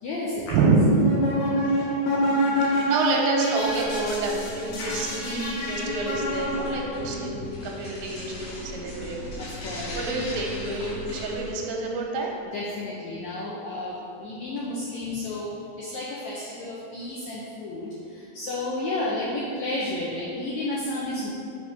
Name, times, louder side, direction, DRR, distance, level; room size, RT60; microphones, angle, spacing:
voice 1, 0.0-0.5 9.4-9.9 12.5-15.5 15.8-21.3, left 2 dB, 90° left, -5 dB, 1.6 m, -32 dB
voice 2, 0.5-0.8 1.7-1.9 2.2-9.2 9.9-12.3, right 3 dB, 85° right, 0 dB, 2.4 m, -28 dB
sound 1, 0.9-7.1, equal, 75° left, 2.5 m, -27 dB
sound 2, 3.6-11.5, left 1 dB, 55° left, 2.6 m, -38 dB
5.7 x 3.5 x 5.0 m, 2.5 s
omnidirectional pair, 4.0 m